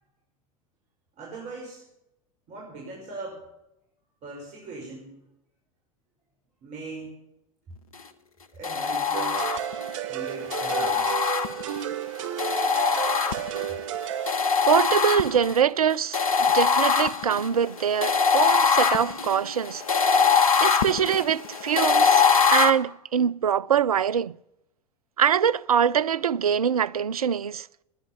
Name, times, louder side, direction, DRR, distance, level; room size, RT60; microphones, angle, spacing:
voice 1, 1.2-1.8 2.5-3.4 4.2-5.2 6.6-7.1 8.5-9.5 10.0-11.1, right 3 dB, 40° right, 5.7 m, -39 dB
sound 1, 8.6-9.9 10.5-11.8 12.4-13.7 14.3-15.6 16.1-22.7, left 6 dB, 75° left, 1.3 m, -22 dB
sound 2, 9.1-14.3, right 11 dB, 60° right, 0.9 m, -32 dB
voice 2, 14.7-19.8 20.6-22.3 22.5-24.4 25.2-27.7, right 8 dB, 80° right, 0.5 m, -24 dB
19.0 x 10.0 x 7.2 m
figure-of-eight pair, 85°, 18 cm